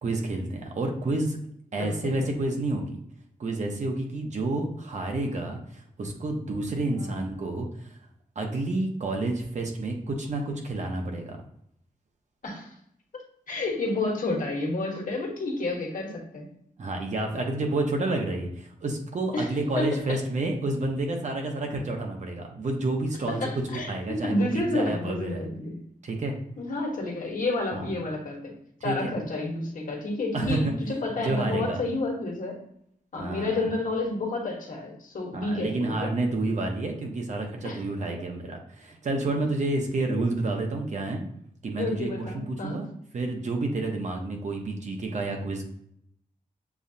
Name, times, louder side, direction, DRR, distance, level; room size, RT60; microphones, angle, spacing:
voice 1, 0.0-1.4 1.7-3.0 3.4-7.9 8.4-11.4 16.8-23.4 23.7-25.4 26.0-26.3 27.7-27.8 28.8-29.1 30.3-30.7 31.2-31.8 33.2-33.5 35.3-41.2 41.6-42.9 43.1-45.6, right 2 dB, 55° right, 2 dB, 0.9 m, -29 dB
voice 2, 1.8-2.3 6.9-7.2 12.4-12.7 13.1-16.5 19.3-20.2 23.3-25.8 26.6-28.5 28.8-32.6 33.1-36.1 37.6-37.8 40.1-40.2 41.8-42.8, left 2 dB, 70° left, 0 dB, 1.2 m, -30 dB
7.0 x 2.3 x 2.8 m, 0.70 s
wide cardioid pair, 120°, 15 cm